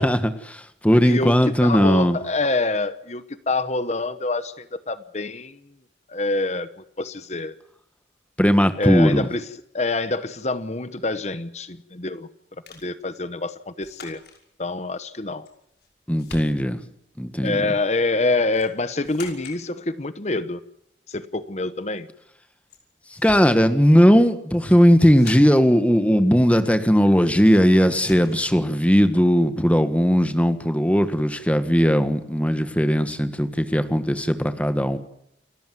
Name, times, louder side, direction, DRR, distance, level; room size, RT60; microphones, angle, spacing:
voice 1, 0.0-2.2 8.4-9.3 16.1-16.8 17.2-17.6 23.2-35.0, equal, 10° left, 9 dB, 1.6 m, -18 dB
voice 2, 1.0-5.6 6.1-6.7 7.0-7.5 8.8-9.5 9.7-12.3 12.7-14.2 14.6-15.5 17.4-20.6 21.1-22.1, left 2 dB, 40° left, 13 dB, 1.0 m, -26 dB
sound 1, 12.7-12.9 13.8-14.4 15.5-15.9 16.2-16.9 18.5-18.7 19.0-19.6 22.7-22.8 23.1-23.6 24.5-24.8 25.1-25.7 27.5-27.6 27.9-28.4, left 3 dB, 60° left, 5.8 m, -43 dB
29.0 x 14.0 x 9.3 m, 0.76 s
head